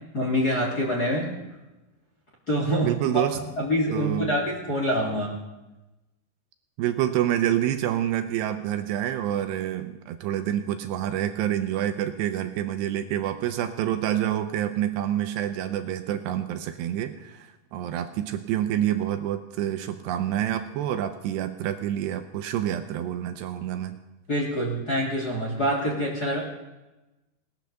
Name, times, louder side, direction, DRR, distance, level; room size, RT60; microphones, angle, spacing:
voice 1, 0.1-1.3 2.5-3.3 3.6-5.3 24.3-26.4, equal, 30° left, -1 dB, 1.9 m, -25 dB
voice 2, 2.8-3.4 3.9-4.4 6.8-24.0, right 11 dB, 80° right, 8 dB, 2.8 m, -27 dB
19.0 x 10.5 x 6.7 m, 1.0 s
omnidirectional pair, 5.2 m